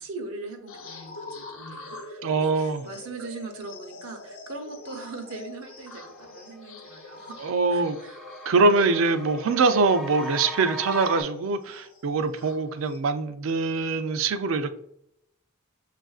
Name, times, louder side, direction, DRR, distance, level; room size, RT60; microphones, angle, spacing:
voice 1, 0.0-7.4 7.7-8.3, right 3 dB, 85° right, 3 dB, 0.8 m, -40 dB
sound 1, 0.7-13.0, left 2 dB, 70° left, 0.8 m, -45 dB
voice 2, 2.2-2.8 7.4-8.0 8.5-14.8, right 3 dB, 70° right, 10 dB, 0.4 m, -23 dB
sound 2, 5.4-5.5 5.9-11.2, left 1 dB, ahead, 0.4 m, -40 dB
6.3 x 2.5 x 2.3 m, 0.76 s
head